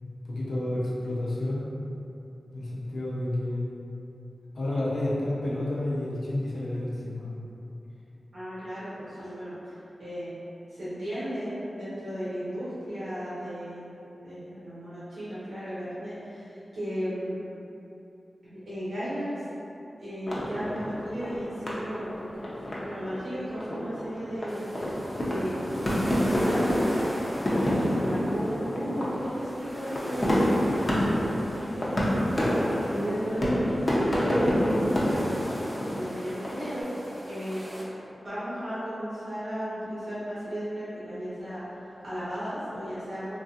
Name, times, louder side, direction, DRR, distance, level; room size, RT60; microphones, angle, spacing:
voice 1, 0.0-1.7 2.5-3.7 4.5-7.3 9.2-9.3, left 1 dB, 85° left, -7 dB, 0.6 m, -30 dB
voice 2, 8.3-9.7 10.0-10.4 10.7-13.9 14.2-17.4 18.4-19.5 20.0-22.6 22.8-24.8 25.2-25.9 26.2-27.0 27.5-32.2 32.6-35.3 35.9-36.9 37.2-37.6 38.1-43.3, equal, 85° right, -13 dB, 1.5 m, -35 dB
sound 1, 20.3-36.8, equal, 40° left, 0.7 m, -28 dB
sound 2, 24.5-37.8, equal, 15° right, 0.6 m, -41 dB
2.9 x 2.7 x 2.4 m, 2.8 s
cardioid pair, 45°, 0 cm